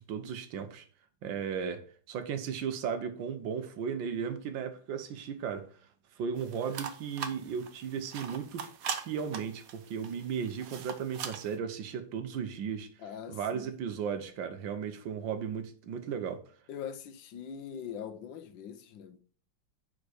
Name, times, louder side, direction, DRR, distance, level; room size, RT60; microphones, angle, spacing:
voice 1, 0.1-0.8 1.2-5.7 6.2-8.7 9.0-12.9 13.3-16.4, right 7 dB, 80° right, 1.6 m, -35 dB
sound 1, 6.4-11.6, right 7 dB, 60° right, 1.1 m, -41 dB
voice 2, 13.0-13.7 16.7-19.2, left 8 dB, 80° left, 1.4 m, -42 dB
5.2 x 5.0 x 6.3 m
omnidirectional pair, 2.1 m